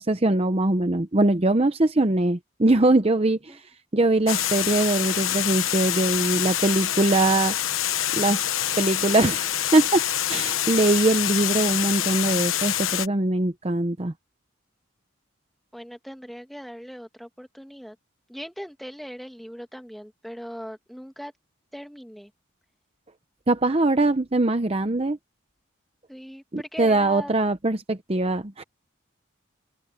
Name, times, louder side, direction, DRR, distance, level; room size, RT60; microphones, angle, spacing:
voice 1, 0.0-3.6 3.9-7.5 8.1-8.5 8.8-14.1 23.5-25.2 26.5-28.6, right 2 dB, 30° right, 0.8 m, -22 dB
Water, 4.3-13.1, left 11 dB, 85° left, 1.0 m, -26 dB
voice 2, 15.7-18.0 18.3-21.3 21.7-22.3 26.1-27.3, equal, ahead, 1.7 m, -39 dB
head